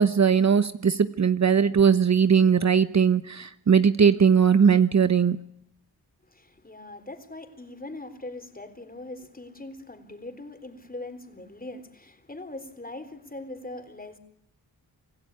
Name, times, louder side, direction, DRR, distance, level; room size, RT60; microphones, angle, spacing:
voice 1, 0.0-5.4, right 6 dB, 45° right, 1.0 m, -20 dB
voice 2, 6.3-14.2, left 2 dB, 20° left, 3.9 m, -41 dB
26.5 x 16.5 x 9.7 m
wide cardioid pair, 90°, 40 cm